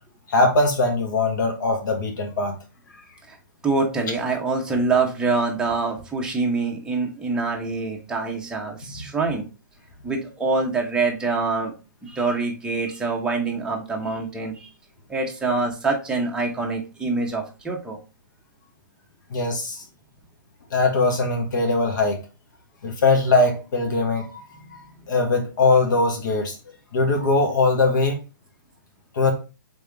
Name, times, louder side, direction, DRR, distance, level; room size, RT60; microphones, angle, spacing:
voice 1, 0.3-2.5 8.9-9.1 19.3-19.8 20.7-22.2 22.8-24.4 25.1-26.6 26.9-28.2 29.1-29.3, left 3 dB, 65° left, 3 dB, 1.5 m, -21 dB
voice 2, 3.6-9.5 10.0-11.7 12.0-14.7 15.1-18.0, right 3 dB, 5° right, 0 dB, 0.9 m, -25 dB
3.7 x 3.4 x 3.4 m, 0.31 s
hypercardioid pair, 145°, 11 cm